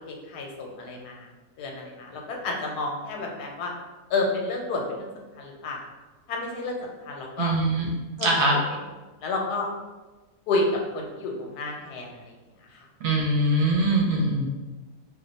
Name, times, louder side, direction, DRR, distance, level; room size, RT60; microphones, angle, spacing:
voice 1, 0.1-1.3 1.6-3.7 4.1-5.1 5.4-5.8 6.3-7.5 8.2-8.6 9.2-9.7 10.5-10.7 10.9-12.1, left 3 dB, 85° left, 0 dB, 1.2 m, -30 dB
voice 2, 7.4-7.9 8.2-8.6 13.0-14.5, right 1 dB, 70° right, -1 dB, 0.9 m, -22 dB
2.6 x 2.2 x 4.0 m, 1.2 s
omnidirectional pair, 1.6 m